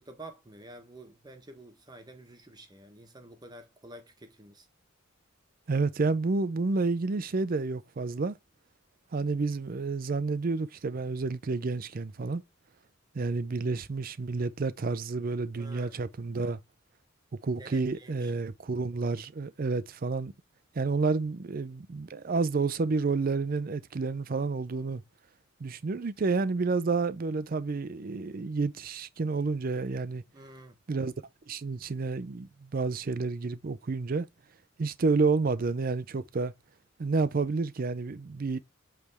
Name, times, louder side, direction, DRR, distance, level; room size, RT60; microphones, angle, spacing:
voice 1, 0.0-4.7 15.6-16.0 17.6-18.4 30.3-30.8, right 1 dB, 20° right, 1.1 m, -49 dB
voice 2, 5.7-8.4 9.1-12.4 13.1-16.6 17.4-20.3 20.8-25.0 25.6-30.2 30.9-31.1 31.5-34.3 34.8-36.5 37.0-38.6, right 4 dB, 45° right, 0.5 m, -30 dB
8.1 x 3.4 x 3.4 m
head